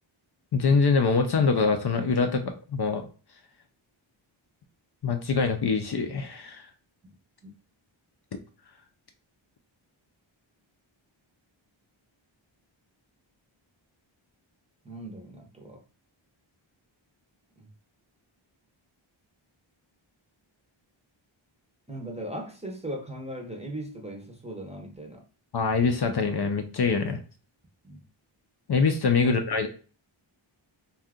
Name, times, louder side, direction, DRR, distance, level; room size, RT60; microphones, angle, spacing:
voice 1, 0.5-3.1 5.0-6.7 25.5-27.2 28.7-29.7, left 4 dB, 55° left, 0.5 m, -24 dB
voice 2, 14.8-15.8 17.6-17.7 21.9-25.3 27.8-28.0 29.2-29.4, right 1 dB, 15° right, 0.7 m, -39 dB
2.7 x 2.3 x 3.5 m
wide cardioid pair, 75°, 49 cm